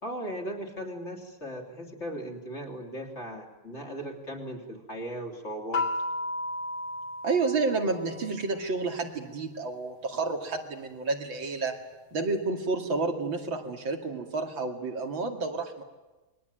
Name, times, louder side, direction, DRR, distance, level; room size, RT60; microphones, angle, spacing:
voice 1, 0.0-5.9, right 1 dB, 30° left, 2 dB, 3.5 m, -37 dB
sound 1, 5.7-8.4, left 2 dB, 80° left, 2.2 m, -33 dB
voice 2, 7.2-11.7 12.1-15.8, right 3 dB, 65° right, 4 dB, 3.2 m, -30 dB
28.5 x 22.5 x 9.2 m, 1.1 s
omnidirectional pair, 2.3 m